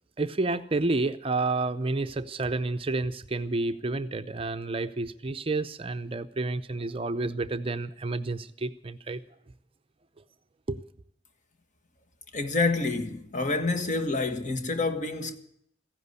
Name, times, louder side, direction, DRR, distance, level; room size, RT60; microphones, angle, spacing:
voice 1, 0.2-9.2 10.7-10.8, right 2 dB, 30° right, 0.6 m, -30 dB
voice 2, 12.3-15.4, left 3 dB, 40° left, 1.7 m, -28 dB
15.5 x 11.0 x 8.1 m
head